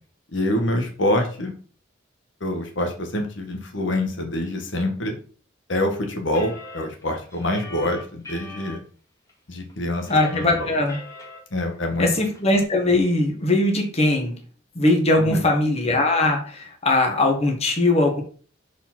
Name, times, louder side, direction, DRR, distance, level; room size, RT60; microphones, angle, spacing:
voice 1, 0.3-1.5 2.4-5.1 5.7-8.8 9.5-10.7 11.5-12.1 15.2-15.4, left 1 dB, 70° left, 3 dB, 1.4 m, -26 dB
sound 1, 6.3-8.8 9.3-9.4 9.7-11.4 11.7-11.8 12.1-12.6, left 2 dB, 15° left, 1.9 m, -40 dB
voice 2, 10.1-11.0 12.0-14.3 14.7-18.2, left 2 dB, 35° left, 2 dB, 1.4 m, -20 dB
5.1 x 4.4 x 5.9 m, 0.42 s
head